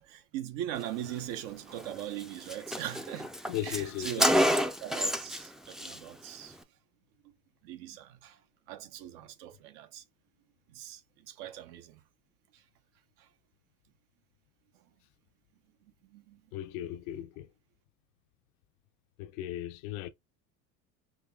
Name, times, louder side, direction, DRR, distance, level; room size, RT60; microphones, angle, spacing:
voice 1, 0.0-3.3 3.6-4.3 4.8-6.6 7.2-7.3 7.6-8.4 8.7-10.0 10.7-12.0 12.5-12.6 13.2-13.3 16.1-16.4, right 12 dB, 70° right, 0.8 m, -41 dB
Car, 1.8-1.9 2.2-2.3 2.5-5.5 5.7-6.0, equal, ahead, 0.3 m, -28 dB
voice 2, 3.5-4.3 16.5-17.5 19.2-20.1, left 12 dB, 80° left, 0.6 m, -37 dB
5.1 x 2.9 x 2.2 m
supercardioid pair, 95°, 40 cm